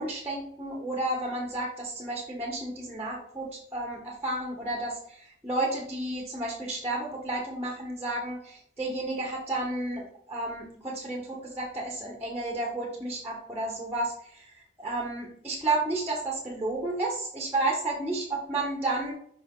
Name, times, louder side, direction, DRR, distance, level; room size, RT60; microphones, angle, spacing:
voice 1, 0.0-19.1, right 2 dB, 10° right, -2 dB, 1.2 m, -32 dB
5.7 x 4.9 x 3.8 m, 0.67 s
head